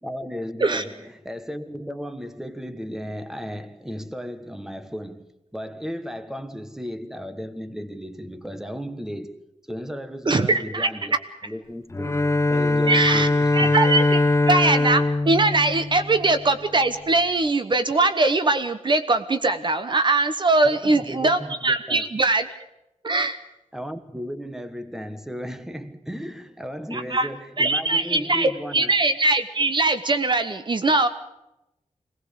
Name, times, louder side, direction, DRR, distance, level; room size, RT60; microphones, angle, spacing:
voice 1, 0.0-5.3 5.5-12.2 12.5-13.8 20.6-22.0 23.7-29.0, equal, 5° right, 1.3 m, -35 dB
voice 2, 10.3-10.9 12.9-22.4 23.0-23.4 26.9-27.3 27.6-31.1, right 2 dB, 40° right, 1.1 m, -21 dB
Bowed string instrument, 11.9-16.5, left 2 dB, 20° left, 0.8 m, -22 dB
22.5 x 18.5 x 6.8 m
wide cardioid pair, 130°, 12 cm